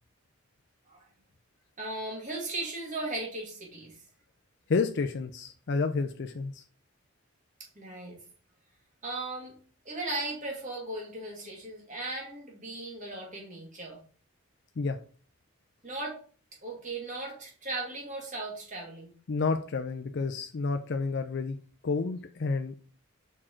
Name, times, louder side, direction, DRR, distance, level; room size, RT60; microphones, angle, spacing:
voice 1, 1.8-4.0 7.8-8.2 9.0-9.5 9.8-14.0 15.8-16.2 16.6-19.1, right 2 dB, 35° right, -1 dB, 2.2 m, -37 dB
voice 2, 4.7-6.6 14.8-15.0 19.3-21.6 21.8-22.7, left 4 dB, 50° left, 5 dB, 0.4 m, -30 dB
6.0 x 4.5 x 4.4 m, 0.43 s
head